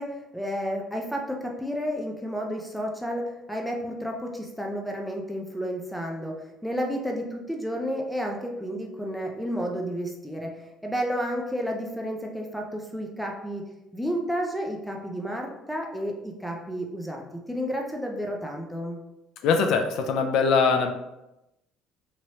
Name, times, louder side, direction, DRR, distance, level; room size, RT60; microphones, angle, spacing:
voice 1, 0.0-13.7 13.9-17.2 17.5-19.0, equal, ahead, 0 dB, 0.5 m, -31 dB
voice 2, 19.4-20.9, left 5 dB, 70° left, 6 dB, 0.3 m, -22 dB
3.0 x 2.9 x 2.7 m, 0.93 s
cardioid pair, 125°, 0 cm